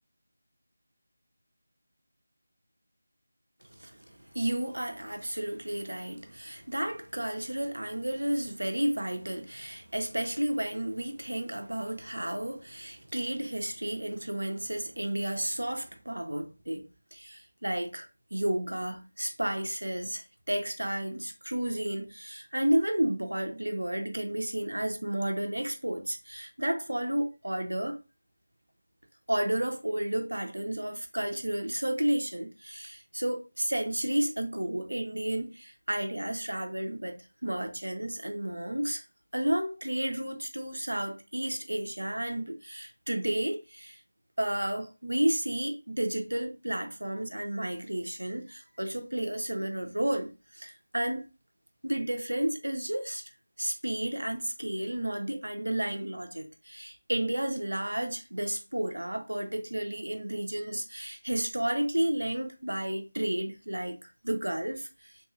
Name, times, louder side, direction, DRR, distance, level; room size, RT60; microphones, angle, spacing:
voice 1, 3.8-16.8 17.1-28.0 29.3-39.0 39.3-44.0 44.4-51.2 51.8-53.3 53.6-65.2, right 1 dB, 85° right, 1.0 m, -32 dB
4.2 x 3.4 x 2.4 m
figure-of-eight pair, 165°, 0 cm